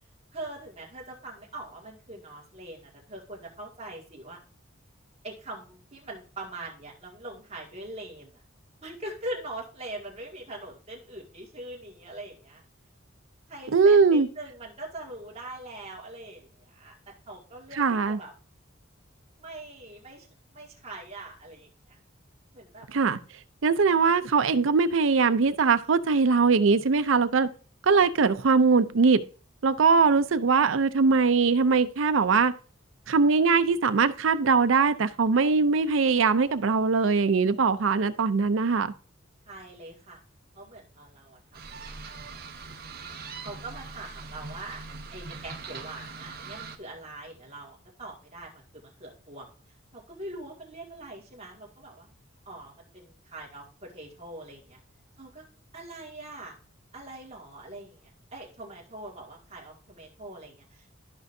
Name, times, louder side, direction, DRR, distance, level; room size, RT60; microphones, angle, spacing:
voice 1, 0.3-4.4 5.2-8.4 8.8-12.6 13.5-17.0 17.3-18.3 19.4-20.3 20.5-22.0 22.5-22.9 39.5-40.2 40.5-43.0 43.4-44.8 45.1-49.5 49.9-52.1 52.5-54.8 55.2-55.4 55.7-56.5 56.9-58.0 58.3-60.9, right 1 dB, 30° right, 2.1 m, -42 dB
voice 2, 13.7-14.3 17.8-18.2 22.9-23.2 23.6-27.5 27.8-29.2 29.6-32.5 33.1-38.9, right 4 dB, 75° right, 0.5 m, -21 dB
sound 1, 41.5-46.8, right 4 dB, 50° right, 0.9 m, -41 dB
13.0 x 5.2 x 2.7 m
head